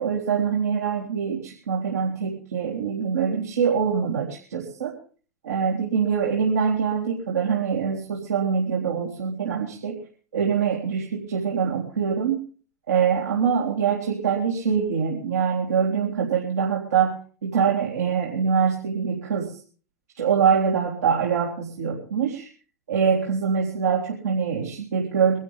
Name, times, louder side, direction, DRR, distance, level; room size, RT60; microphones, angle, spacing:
voice 1, 0.0-4.9 5.4-10.0 10.3-12.4 12.9-17.2 17.4-19.5 20.2-22.5 22.9-25.4, right 6 dB, 75° right, -4 dB, 3.9 m, -24 dB
23.5 x 13.0 x 3.7 m, 0.41 s
figure-of-eight pair, 90°, 9 cm